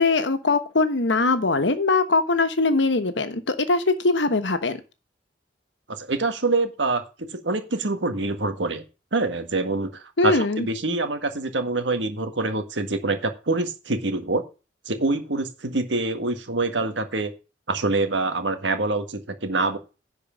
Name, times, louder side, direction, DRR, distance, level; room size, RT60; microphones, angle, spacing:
voice 1, 0.0-4.8 10.2-10.7, left 3 dB, 90° left, 9 dB, 1.2 m, -21 dB
voice 2, 5.9-7.0 7.4-8.8 9.1-14.4 14.9-17.3 17.7-19.8, right 3 dB, 90° right, 8 dB, 1.6 m, -25 dB
10.5 x 4.7 x 7.2 m, 0.32 s
head